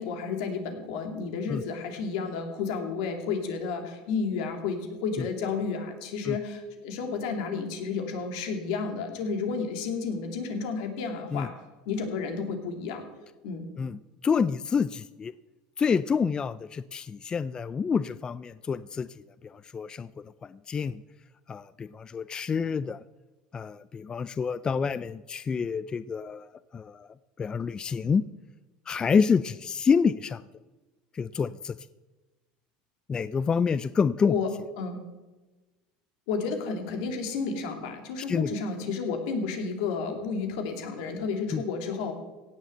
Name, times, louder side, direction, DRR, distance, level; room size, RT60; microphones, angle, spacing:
voice 1, 0.0-11.5 11.9-13.0 13.4-13.7 34.2-34.5 34.8-35.0 36.3-42.1, left 5 dB, 80° left, 4 dB, 2.9 m, -31 dB
voice 2, 13.8-15.3 15.8-20.1 20.4-21.0 21.5-23.0 23.5-27.1 27.4-28.3 28.9-30.4 31.1-31.8 33.1-34.3 38.3-38.5 41.5-41.6, left 6 dB, 25° left, 15 dB, 0.4 m, -28 dB
17.0 x 7.3 x 7.8 m, 1.2 s
supercardioid pair, 120°, 3 cm